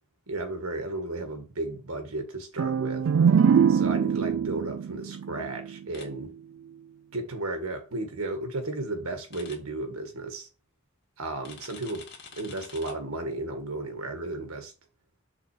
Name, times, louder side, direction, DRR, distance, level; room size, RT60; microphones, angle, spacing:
voice 1, 0.3-3.1 3.7-6.3 7.1-10.5 11.2-12.1 12.3-14.7, right 2 dB, 80° right, 1.7 m, -34 dB
sound 1, 2.6-6.3, right 7 dB, 65° right, 0.3 m, -23 dB
sound 2, 5.9-6.1 9.3-9.6 11.4-12.9, left 5 dB, 50° left, 1.8 m, -46 dB
6.0 x 4.0 x 4.9 m
head